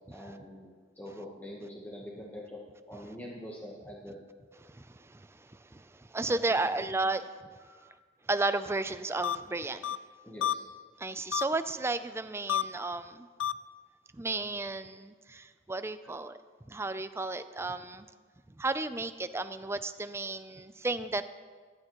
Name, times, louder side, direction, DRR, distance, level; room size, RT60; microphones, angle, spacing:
voice 1, 0.1-2.6 2.9-4.2 6.3-6.4 7.6-7.9 9.3-9.4 10.2-10.7, equal, 10° left, -3 dB, 1.1 m, -45 dB
voice 2, 4.6-7.3 8.3-10.0 11.0-13.3 14.1-16.4 16.7-18.1 18.6-21.2, right 2 dB, 15° right, 11 dB, 0.4 m, -33 dB
sound 1, 9.2-9.4 9.8-10.0 10.4-10.5 11.3-11.4 12.5-12.6 13.4-13.5, left 10 dB, 90° left, 0.4 m, -28 dB
16.0 x 11.5 x 3.0 m, 1.5 s
head